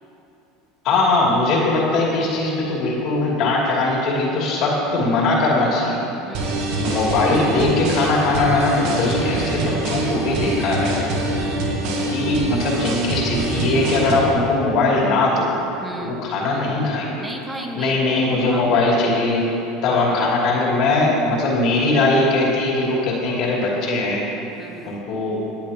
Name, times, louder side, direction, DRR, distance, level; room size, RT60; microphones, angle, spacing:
voice 1, 0.8-6.0 6.8-11.1 12.1-15.5 16.0-17.2 17.7-19.4 19.8-24.3 24.8-25.4, left 2 dB, 55° left, -4 dB, 2.8 m, -20 dB
voice 2, 6.2-6.8 11.3-11.8 15.8-16.3 17.2-18.1 18.5-18.8 20.1-20.4 24.6-25.0, right 1 dB, 15° right, 1 dB, 1.5 m, -35 dB
sound 1, 6.3-14.3, right 2 dB, 65° right, 1.8 m, -24 dB
18.5 x 10.0 x 2.9 m, 3.0 s
hypercardioid pair, 85°, 0 cm